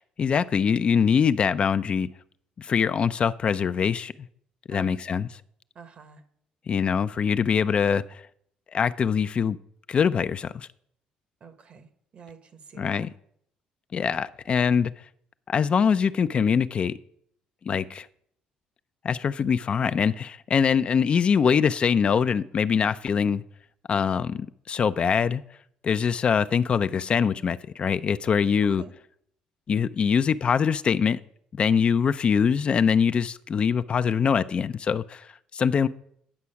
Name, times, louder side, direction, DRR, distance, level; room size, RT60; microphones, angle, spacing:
voice 1, 0.0-2.1 2.6-4.1 4.7-5.3 6.7-8.2 8.7-9.6 9.9-10.7 12.8-13.1 13.9-14.9 15.5-16.9 17.7-18.1 19.0-23.4 23.9-25.4 25.8-28.8 29.7-31.2 31.5-35.9, left 6 dB, 40° left, 0.4 m, -23 dB
voice 2, 4.7-5.2 5.7-6.2 11.4-13.1 28.7-28.9, right 5 dB, 50° right, 1.3 m, -47 dB
9.7 x 6.1 x 5.7 m
cardioid pair, 90°, 3 cm